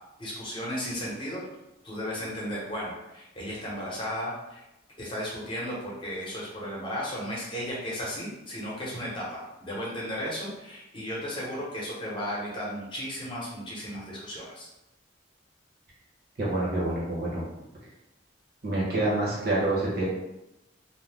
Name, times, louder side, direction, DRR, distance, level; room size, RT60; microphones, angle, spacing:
voice 1, 0.2-1.4 1.8-4.6 5.0-14.7, equal, 25° left, -5 dB, 0.8 m, -35 dB
voice 2, 16.4-17.4 18.6-20.1, right 2 dB, 50° right, -6 dB, 0.9 m, -27 dB
2.5 x 2.1 x 3.3 m, 0.92 s
head